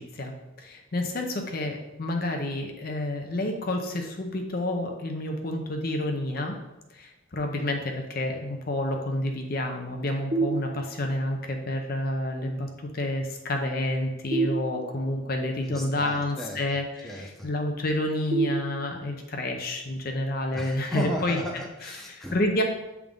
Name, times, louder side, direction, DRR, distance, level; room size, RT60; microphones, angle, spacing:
voice 1, 0.9-1.3 1.5-3.8 4.2-6.5 7.4-7.8 8.2-10.7 11.0-11.4 11.7-12.6 13.0-13.2 13.5-16.8 17.4-21.4 21.8-21.9 22.3-22.6, left 1 dB, 45° left, 3 dB, 0.6 m, -29 dB
sound 1, 10.3-11.3 14.3-15.3 18.3-19.3, right 3 dB, 45° right, 1.1 m, -29 dB
voice 2, 15.7-16.6 17.0-17.5 20.5-22.4, equal, ahead, -1 dB, 0.7 m, -35 dB
7.3 x 3.5 x 3.7 m, 1.0 s
head